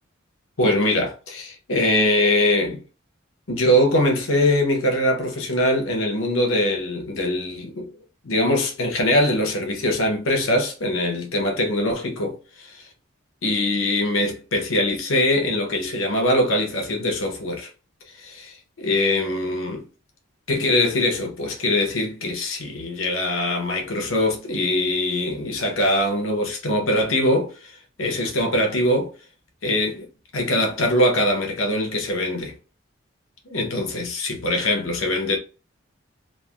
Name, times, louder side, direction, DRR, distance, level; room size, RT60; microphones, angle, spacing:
voice 1, 0.6-2.8 3.5-7.9 8.2-12.8 13.4-17.7 18.2-19.9 20.5-29.1 29.6-30.1 30.3-32.5 33.5-35.4, left 1 dB, 85° left, 0.9 m, -22 dB
3.2 x 2.5 x 2.4 m
head